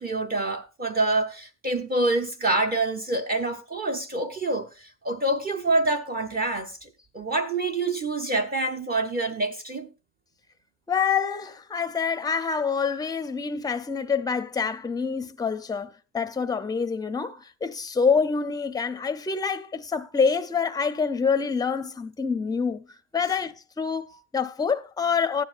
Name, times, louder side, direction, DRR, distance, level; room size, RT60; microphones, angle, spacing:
voice 1, 0.0-6.9 7.1-9.9, right 2 dB, 30° right, 0.7 m, -26 dB
voice 2, 10.9-25.4, left 5 dB, 10° left, 0.5 m, -26 dB
14.5 x 10.0 x 2.5 m
cardioid pair, 135°, 33 cm